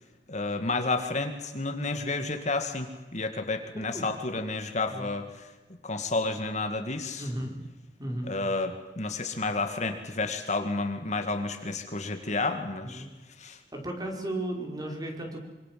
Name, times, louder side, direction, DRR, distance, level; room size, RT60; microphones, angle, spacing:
voice 1, 0.3-5.5 5.8-7.3 8.2-13.1 13.4-13.6, left 3 dB, 45° left, 6 dB, 2.3 m, -31 dB
voice 2, 7.2-7.5 8.0-8.3 12.8-13.1 13.7-15.5, right 1 dB, 20° right, 2 dB, 5.3 m, -35 dB
26.0 x 25.5 x 7.7 m, 1.1 s
head